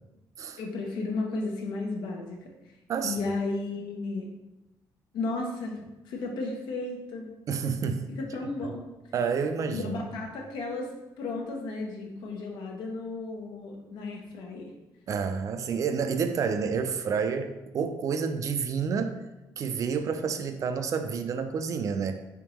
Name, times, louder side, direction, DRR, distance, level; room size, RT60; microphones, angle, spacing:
voice 1, 0.6-2.5 3.0-4.3 5.1-7.3 8.2-8.9 9.7-14.7, left 3 dB, 90° left, 1 dB, 0.8 m, -34 dB
voice 2, 7.5-8.1 9.1-9.9 15.1-19.2 19.6-22.2, right 6 dB, 45° right, 8 dB, 0.4 m, -29 dB
3.6 x 3.5 x 3.0 m, 0.98 s
cardioid pair, 130°, 8 cm